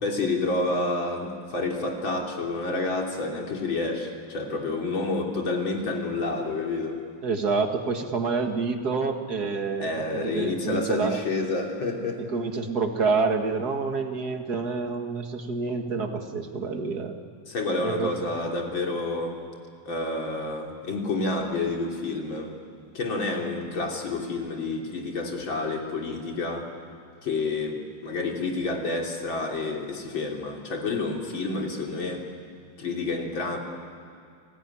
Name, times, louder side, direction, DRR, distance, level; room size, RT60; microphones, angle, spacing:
voice 1, 0.0-7.0 9.8-12.2 17.5-19.4 19.9-22.5 22.9-26.7 27.2-32.2 32.8-33.6, left 3 dB, 90° left, 0 dB, 4.0 m, -29 dB
voice 2, 7.2-11.2 12.3-17.1 17.8-18.1, right 4 dB, 55° right, 5 dB, 2.3 m, -27 dB
29.5 x 20.0 x 9.9 m, 2.4 s
omnidirectional pair, 2.1 m